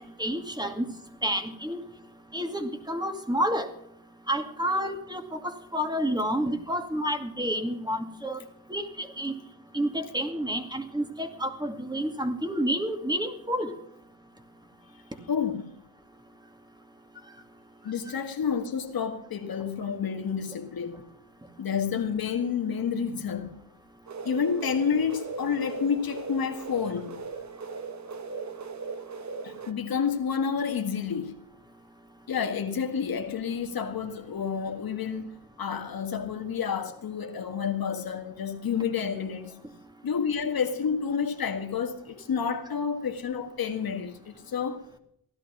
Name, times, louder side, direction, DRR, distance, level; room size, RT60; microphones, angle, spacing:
voice 1, 0.2-0.9 1.2-1.8 2.3-3.7 4.3-8.4 8.7-9.3 9.7-13.7, equal, 10° right, 2.3 m, -29 dB
voice 2, 15.3-15.7 17.8-21.0 21.6-23.5 24.2-27.2 29.4-31.3 32.3-39.6 40.0-44.8, left 6 dB, 75° left, 1.7 m, -29 dB
sound 1, 24.1-29.7, right 4 dB, 50° right, 1.2 m, -38 dB
16.5 x 11.5 x 6.0 m
cardioid pair, 70°, 36 cm